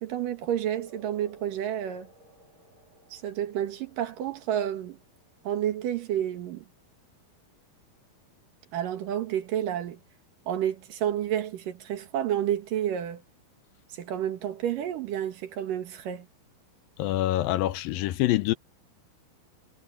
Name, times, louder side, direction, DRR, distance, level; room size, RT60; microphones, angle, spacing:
voice 1, 0.0-2.1 3.1-5.0 5.4-6.7 8.7-10.0 10.5-13.2 13.9-16.3, right 10 dB, 65° right, 3.1 m, -30 dB
sound 1, 0.8-7.8, right 1 dB, 30° right, 5.2 m, -58 dB
voice 2, 17.0-18.5, left 15 dB, 75° left, 2.4 m, -25 dB
omnidirectional pair, 4.2 m